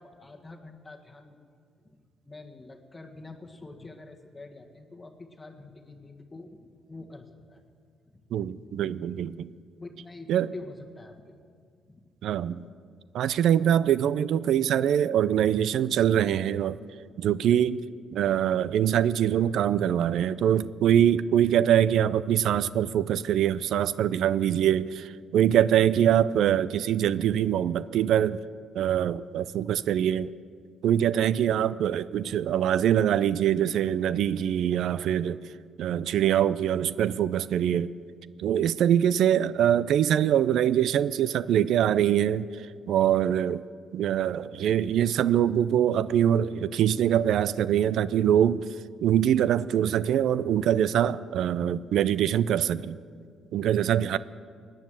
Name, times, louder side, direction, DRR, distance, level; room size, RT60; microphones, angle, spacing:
voice 1, 0.0-1.4 1.8-2.0 2.2-7.6 8.1-9.0 9.8-11.4 11.9-12.0 12.4-12.6, left 2 dB, 20° left, 3 dB, 1.5 m, -46 dB
voice 2, 8.3-9.5 10.3-10.5 12.2-12.7 13.1-16.8 17.2-17.8 18.1-28.4 28.7-30.3 30.8-35.4 35.8-37.9 38.4-43.6 43.9-48.6 49.0-53.0 53.5-54.2, right 10 dB, 75° right, 18 dB, 0.4 m, -24 dB
17.0 x 10.0 x 7.5 m, 2.1 s
cardioid pair, 90°, 0 cm